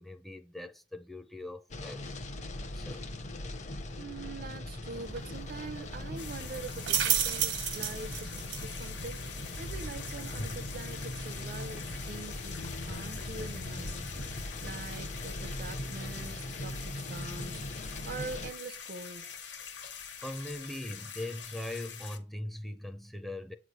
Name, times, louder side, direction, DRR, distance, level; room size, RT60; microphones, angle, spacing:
voice 1, 0.0-2.1 2.7-3.1 20.2-23.5, left 1 dB, ahead, 0.5 m, -41 dB
sound 1, 1.7-18.5, left 1 dB, 40° left, 0.7 m, -40 dB
voice 2, 4.0-12.6 12.8-14.3 14.6-19.3, right 3 dB, 55° right, 0.5 m, -44 dB
sound 2, 4.9-15.5, right 8 dB, 80° right, 1.2 m, -37 dB
sound 3, 6.2-22.2, left 6 dB, 70° left, 1.1 m, -45 dB
8.1 x 3.2 x 5.4 m
head